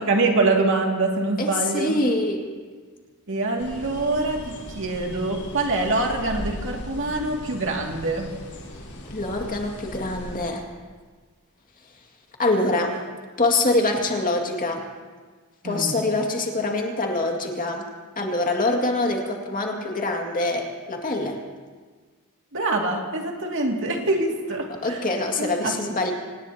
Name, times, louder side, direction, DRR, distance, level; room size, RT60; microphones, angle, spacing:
voice 1, 0.0-2.0 3.3-8.3 15.6-16.0 22.5-25.0 25.4-25.8, right 2 dB, 60° right, 1 dB, 2.3 m, -25 dB
voice 2, 1.4-2.4 9.1-10.7 12.4-13.0 13.4-14.8 15.6-17.8 18.2-21.4 24.8-26.1, left 2 dB, 40° left, 1 dB, 2.1 m, -24 dB
sound 1, 3.6-10.4, left 1 dB, 75° left, 4.5 m, -38 dB
26.0 x 19.0 x 2.9 m, 1.5 s
head